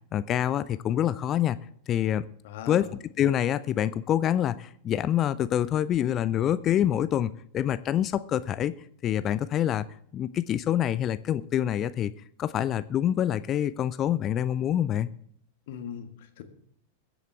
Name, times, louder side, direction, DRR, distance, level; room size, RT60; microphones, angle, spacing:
voice 1, 0.1-1.6 1.9-2.3 2.7-2.9 3.2-8.7 9.0-9.9 10.1-12.1 12.4-15.1, left 11 dB, 30° left, 15 dB, 0.4 m, -26 dB
voice 2, 2.4-2.9 15.7-16.4, left 8 dB, 55° left, 7 dB, 1.5 m, -39 dB
22.0 x 8.0 x 3.4 m, 0.62 s
figure-of-eight pair, 90°, 0 cm